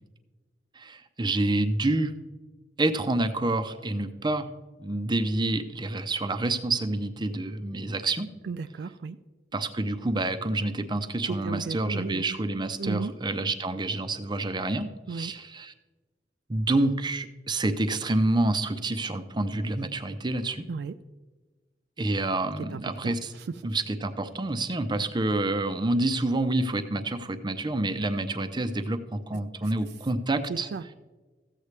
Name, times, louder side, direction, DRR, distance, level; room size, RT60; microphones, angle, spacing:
voice 1, 0.8-2.1 2.8-4.5 4.8-8.3 9.5-15.7 16.5-20.7 22.0-23.3 23.6-30.7, right 2 dB, 25° right, 10 dB, 0.6 m, -28 dB
voice 2, 8.4-9.2 11.4-12.2 12.8-13.1 15.1-15.3 20.7-20.9 22.7-23.2 30.5-30.9, right 4 dB, 65° right, 10 dB, 0.3 m, -34 dB
14.5 x 8.2 x 3.2 m, 1.3 s
head